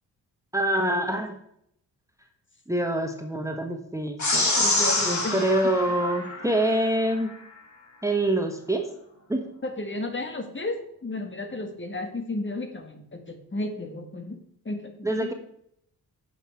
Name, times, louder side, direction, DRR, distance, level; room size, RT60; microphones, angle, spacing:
voice 1, 0.5-1.4 2.7-4.5 5.0-7.3 8.0-8.8 9.3-9.4 15.0-15.3, right 1 dB, 10° right, 4 dB, 1.3 m, -25 dB
sound 1, 4.2-6.9, left 2 dB, 50° left, 3.4 m, -26 dB
voice 2, 4.6-5.4 9.6-14.4 14.7-15.3, left 2 dB, 30° left, 6 dB, 1.8 m, -33 dB
8.9 x 6.3 x 4.6 m, 0.70 s
supercardioid pair, 55°, 38 cm